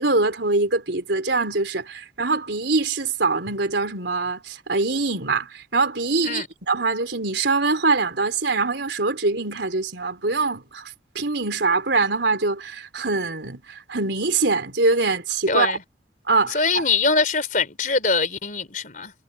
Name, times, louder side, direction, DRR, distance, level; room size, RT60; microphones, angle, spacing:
voice 1, 0.0-10.9 11.2-15.7 16.3-16.9, right 3 dB, 75° right, 3.5 m, -23 dB
voice 2, 15.5-15.8 16.5-19.1, left 4 dB, 45° left, 3.9 m, -23 dB
head